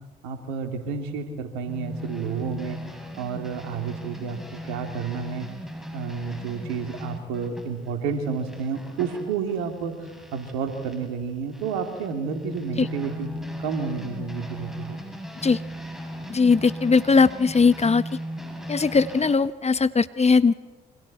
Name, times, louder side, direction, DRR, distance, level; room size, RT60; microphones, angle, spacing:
voice 1, 0.2-2.8 3.2-5.5 5.9-13.3 13.6-15.0, right 5 dB, 80° right, 4 dB, 3.1 m, -30 dB
sound 1, 1.6-11.1 11.5-19.4, equal, ahead, 7.1 m, -38 dB
voice 2, 16.3-18.0 18.7-20.5, left 4 dB, 30° left, 13 dB, 1.2 m, -19 dB
27.5 x 26.0 x 4.4 m, 1.2 s
hypercardioid pair, 50°, 21 cm